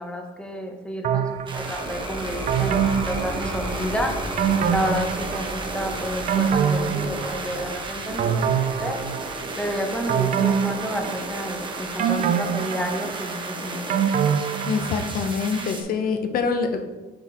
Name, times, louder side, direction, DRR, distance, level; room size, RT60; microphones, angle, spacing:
voice 1, 0.0-4.1 4.7-9.0 9.6-14.0, equal, 5° left, 3 dB, 1.0 m, -30 dB
sound 1, 1.0-1.9 2.5-3.9 4.4-5.7 6.0-7.7 8.2-9.5 10.1-11.5 12.0-15.2 15.6-15.7, right 8 dB, 50° right, 0.4 m, -25 dB
sound 2, 1.2-12.4, equal, 30° left, 2.0 m, -37 dB
sound 3, 1.5-15.8, right 3 dB, 30° right, 1.0 m, -33 dB
voice 2, 14.7-16.9, left 5 dB, 60° left, 6 dB, 0.9 m, -25 dB
7.4 x 4.6 x 3.6 m, 1.2 s
cardioid pair, 110°, 17 cm